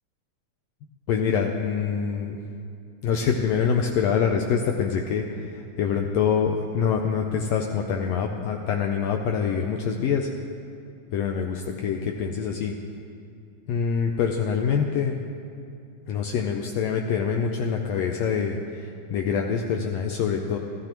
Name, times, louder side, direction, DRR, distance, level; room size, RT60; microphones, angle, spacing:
voice 1, 1.1-2.4 3.0-10.3 11.1-12.7 13.7-15.2 16.1-20.6, left 6 dB, 80° left, 3 dB, 1.5 m, -25 dB
15.0 x 13.0 x 3.0 m, 2.5 s
omnidirectional pair, 3.5 m